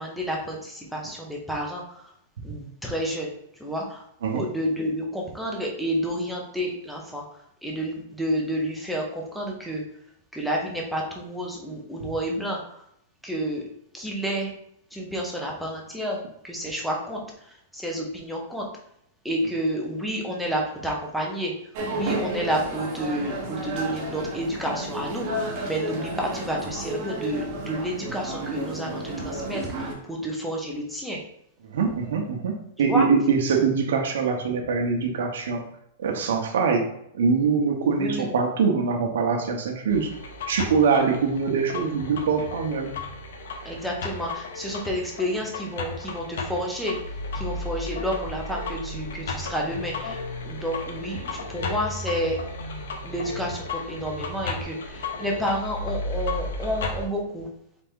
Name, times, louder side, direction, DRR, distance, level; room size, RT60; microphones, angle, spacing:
voice 1, 0.0-2.0 2.4-3.3 3.6-4.0 4.3-7.2 7.6-9.8 10.3-12.8 13.2-13.6 13.9-14.5 14.9-16.2 16.4-18.7 19.2-21.5 21.9-31.2 32.8-33.1 37.9-38.3 43.6-47.0 47.3-52.4 53.0-57.5, equal, ahead, -2 dB, 0.7 m, -30 dB
sound 1, 21.7-29.9, right 1 dB, 35° right, 1.0 m, -32 dB
voice 2, 31.7-35.6 36.0-36.9 37.1-40.1 40.5-42.9, right 5 dB, 70° right, 2 dB, 0.8 m, -23 dB
sound 2, 39.9-57.1, left 2 dB, 70° left, 0.8 m, -34 dB
4.1 x 3.4 x 3.6 m, 0.73 s
supercardioid pair, 175°, 0 cm